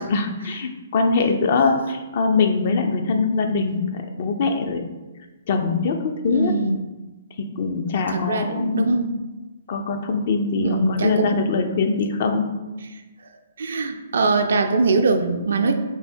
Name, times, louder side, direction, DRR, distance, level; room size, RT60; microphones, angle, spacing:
voice 1, 0.0-4.8 5.5-6.6 7.4-9.0 9.7-12.5, left 4 dB, 50° left, 5 dB, 0.5 m, -22 dB
voice 2, 6.3-6.8 8.1-9.1 10.6-11.3 13.6-15.7, right 3 dB, 65° right, 6 dB, 0.4 m, -22 dB
3.4 x 2.7 x 4.3 m, 1.1 s
figure-of-eight pair, 130°, 0 cm